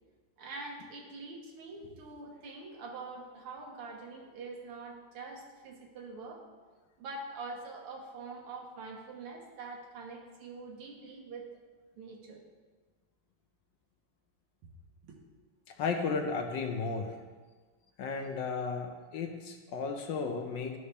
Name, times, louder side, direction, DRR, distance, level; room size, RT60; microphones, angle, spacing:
voice 1, 0.4-6.4 7.0-11.5 12.0-12.4 15.1-15.2, right 3 dB, 85° right, -1 dB, 2.0 m, -44 dB
voice 2, 15.7-17.2 18.0-20.8, left 4 dB, 70° left, 4 dB, 1.2 m, -34 dB
13.0 x 5.4 x 3.3 m, 1.4 s
omnidirectional pair, 2.4 m